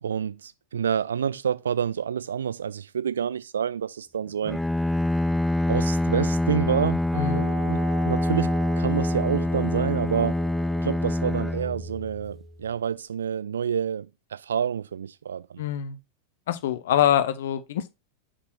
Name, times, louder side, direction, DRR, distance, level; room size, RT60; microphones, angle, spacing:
voice 1, 0.0-4.6 5.7-10.4 10.8-15.6, right 8 dB, 65° right, 0.5 m, -28 dB
Bowed string instrument, 4.4-12.4, left 1 dB, ahead, 0.3 m, -25 dB
voice 2, 7.1-7.4 15.6-16.0 16.5-17.9, left 11 dB, 55° left, 0.8 m, -24 dB
sound 1, 7.1-12.5, right 6 dB, 25° right, 2.3 m, -38 dB
5.2 x 4.3 x 4.6 m
figure-of-eight pair, 90°, 0 cm